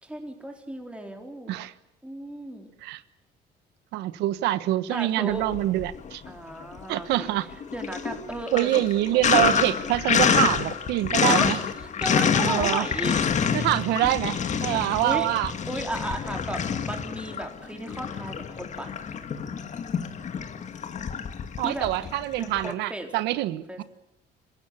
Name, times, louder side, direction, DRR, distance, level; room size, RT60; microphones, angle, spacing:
voice 1, 0.0-1.5 2.0-2.7 4.9-5.4 6.3-7.3 7.7-8.9 9.1-9.7 11.2-11.5 11.8-13.7 14.6-14.8 15.0-15.3 15.7-19.0 21.6-21.9 22.4-23.8, right 1 dB, 5° right, 3 dB, 4.1 m, -35 dB
voice 2, 3.9-6.2 6.9-7.5 8.5-11.6 12.4-12.9 13.5-15.5 21.6-23.8, right 15 dB, 90° right, 15 dB, 1.2 m, -25 dB
Sink (filling or washing), 5.4-6.3 6.6-22.7, left 7 dB, 45° left, 2.0 m, -27 dB
27.0 x 15.5 x 9.8 m, 0.82 s
cardioid pair, 110°, 17 cm